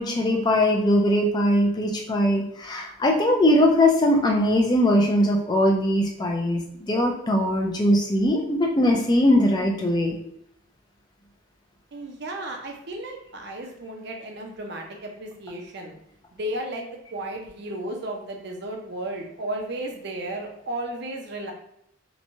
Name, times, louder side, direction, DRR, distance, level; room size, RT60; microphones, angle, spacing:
voice 1, 0.0-10.1, left 1 dB, 20° left, 1 dB, 0.4 m, -21 dB
voice 2, 11.9-15.9 16.3-21.5, right 1 dB, 55° right, 2 dB, 0.5 m, -34 dB
2.9 x 2.2 x 2.6 m, 0.75 s
head